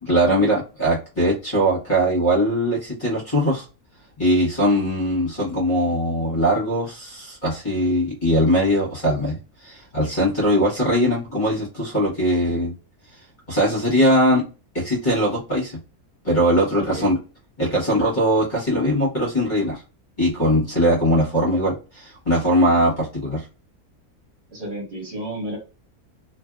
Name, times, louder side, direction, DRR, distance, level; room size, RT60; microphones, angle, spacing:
voice 1, 0.0-3.6 4.2-12.7 13.5-14.4 14.7-15.8 16.2-17.2 17.6-19.8 20.2-23.5, equal, 35° left, -4 dB, 1.3 m, -21 dB
voice 2, 16.8-17.1 24.5-25.6, right 1 dB, 45° right, -3 dB, 1.9 m, -31 dB
3.1 x 2.6 x 2.3 m, 0.33 s
omnidirectional pair, 1.5 m